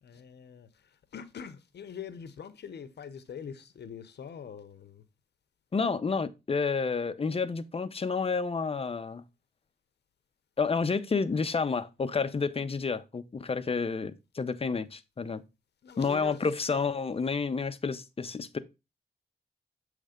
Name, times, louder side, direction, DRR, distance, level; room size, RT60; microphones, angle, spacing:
voice 1, 0.0-5.0 15.8-16.5, left 7 dB, 75° left, 0.8 m, -44 dB
voice 2, 5.7-9.2 10.6-15.4 16.0-18.6, left 5 dB, 35° left, 0.7 m, -30 dB
7.7 x 3.3 x 5.0 m
cardioid pair, 80°, 18 cm